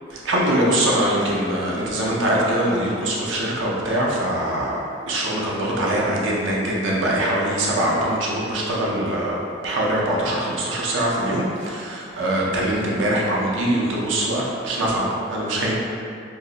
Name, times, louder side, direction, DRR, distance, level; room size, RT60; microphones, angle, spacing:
voice 1, 0.1-4.8 5.1-15.7, right 1 dB, 70° right, -4 dB, 0.5 m, -23 dB
2.7 x 2.0 x 3.7 m, 2.4 s
head